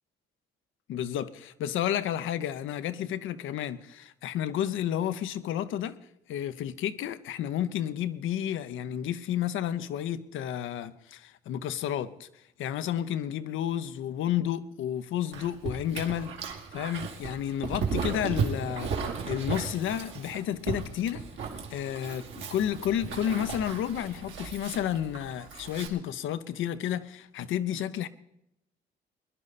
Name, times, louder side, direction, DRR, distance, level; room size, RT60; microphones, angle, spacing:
voice 1, 0.9-6.0 6.3-12.3 12.6-16.3 16.7-21.2 21.7-28.1, left 10 dB, 80° left, 0.8 m, -31 dB
Dog, 15.3-25.9, right 5 dB, 75° right, 2.1 m, -35 dB
22.0 x 11.0 x 4.2 m
cardioid pair, 90°, 20 cm